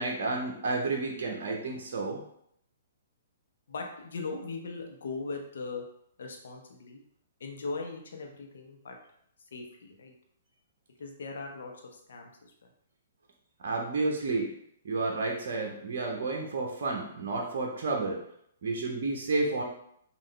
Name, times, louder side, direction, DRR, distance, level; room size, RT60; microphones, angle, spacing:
voice 1, 0.0-2.2 13.6-14.5 14.8-18.2 18.6-19.6, right 3 dB, 55° right, 0 dB, 0.7 m, -31 dB
voice 2, 3.7-5.8 6.2-7.0 7.4-9.0 9.5-10.1 11.0-12.5, left 3 dB, 60° left, 2 dB, 0.8 m, -39 dB
5.5 x 2.4 x 3.2 m, 0.70 s
figure-of-eight pair, 120°, 0 cm